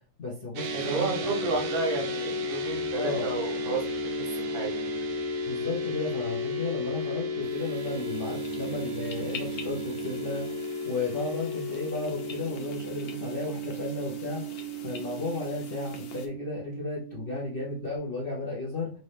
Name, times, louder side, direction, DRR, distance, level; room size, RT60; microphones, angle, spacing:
voice 1, 0.2-1.3 2.9-3.3 5.5-14.4 14.8-18.9, left 3 dB, 55° left, -5 dB, 0.6 m, -34 dB
sound 1, 0.6-18.0, left 1 dB, 65° right, 1.0 m, -34 dB
voice 2, 0.7-3.8 4.5-4.8, right 4 dB, 80° right, 2 dB, 1.9 m, -31 dB
sound 2, 7.4-16.3, left 5 dB, 85° left, 1.5 m, -46 dB
4.1 x 2.7 x 3.3 m, 0.41 s
omnidirectional pair, 2.1 m